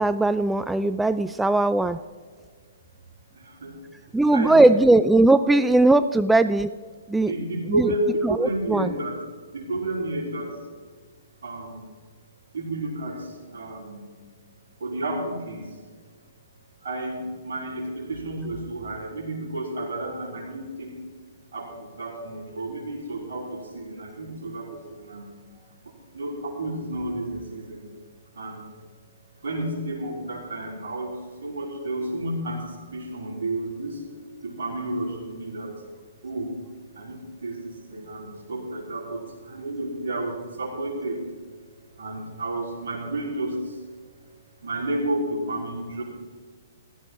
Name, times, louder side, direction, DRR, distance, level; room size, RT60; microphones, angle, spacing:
voice 1, 0.0-2.0 4.1-6.7 7.1-7.3 7.7-7.9 8.2-8.9, right 2 dB, 5° right, 12 dB, 0.3 m, -19 dB
voice 2, 4.3-4.7 7.3-9.1 9.5-10.5 11.4-11.8 12.5-13.2 13.5-14.0 14.8-15.6 16.8-20.9 21.5-25.3 26.1-27.9 28.4-28.6 29.4-31.1 31.4-32.6 32.9-34.0 34.4-35.7 36.2-36.5 37.0-37.5 37.9-39.2 39.5-41.2 42.0-43.5 44.6-46.0, right 2 dB, 70° right, -1 dB, 3.8 m, -31 dB
14.5 x 12.0 x 4.4 m, 1.5 s
hypercardioid pair, 125°, 0 cm